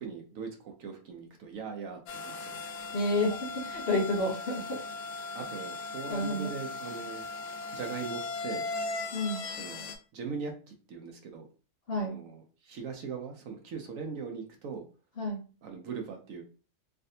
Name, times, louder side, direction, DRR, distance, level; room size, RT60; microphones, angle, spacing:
voice 1, 0.0-2.6 5.3-7.2 7.7-8.7 9.5-11.5 12.0-14.8 15.6-16.4, right 5 dB, 70° right, 4 dB, 1.0 m, -40 dB
sound 1, 2.1-10.0, left 3 dB, 75° left, 1.0 m, -38 dB
voice 2, 2.9-4.8 6.1-6.5 9.1-9.5 11.9-12.2 15.2-15.4, left 1 dB, 50° left, -2 dB, 0.9 m, -30 dB
3.3 x 2.5 x 2.7 m, 0.36 s
omnidirectional pair, 1.5 m